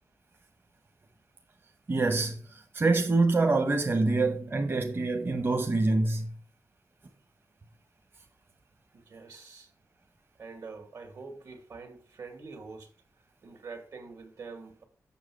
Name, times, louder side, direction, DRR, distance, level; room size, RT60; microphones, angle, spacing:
voice 1, 1.9-6.3, right 3 dB, 35° right, 0.9 m, -26 dB
voice 2, 8.9-9.7 10.4-12.9 13.4-14.8, right 4 dB, 70° right, 2.2 m, -45 dB
7.3 x 6.3 x 4.8 m
wide cardioid pair, 150°, 6 cm